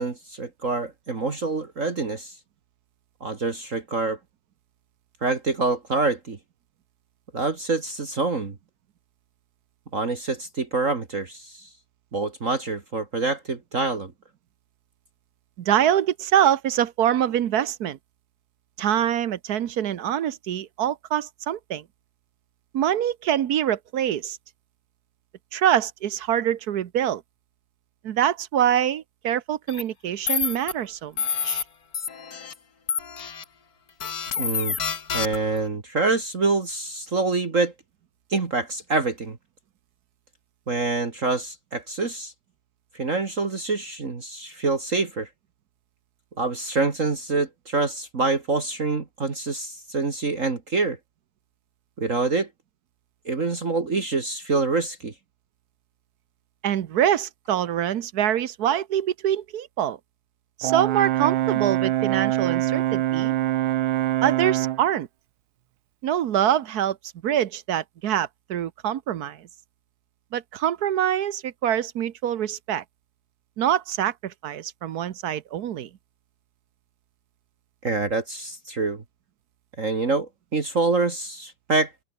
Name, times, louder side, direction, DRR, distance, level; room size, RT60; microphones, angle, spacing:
voice 1, 0.0-2.4 3.2-4.2 5.2-6.4 7.3-8.5 9.9-11.7 12.1-14.1 34.4-34.8 35.1-37.7 38.3-39.4 40.7-42.3 42.9-45.3 46.4-51.0 52.0-52.5 53.3-55.1 77.8-79.0 79.8-81.9, right 3 dB, 40° right, 2.3 m, -26 dB
voice 2, 15.6-18.0 18.8-21.8 22.7-24.4 25.5-27.2 28.0-31.6 56.6-60.0 60.6-63.3 64.2-65.1 66.0-67.0 67.2-69.5 70.3-72.8 73.6-75.9, right 10 dB, 60° right, 1.2 m, -25 dB
sound 1, 29.7-29.8 30.3-30.7 31.2-31.6 31.9-32.5 32.9-33.4 34.0-35.6, left 6 dB, 50° left, 2.2 m, -28 dB
Brass instrument, 60.6-64.9, right 14 dB, 85° right, 1.5 m, -24 dB
omnidirectional pair, 2.2 m